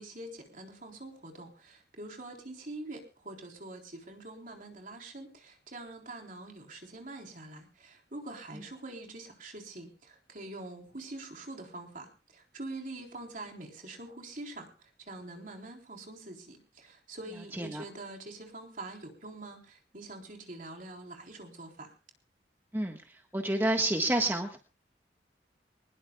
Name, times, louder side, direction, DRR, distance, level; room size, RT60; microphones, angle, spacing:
voice 1, 0.0-21.9, right 2 dB, 50° right, 2 dB, 3.8 m, -45 dB
voice 2, 17.5-17.8 22.7-24.6, right 1 dB, 15° right, 3 dB, 1.5 m, -29 dB
22.5 x 20.0 x 2.3 m, 0.33 s
head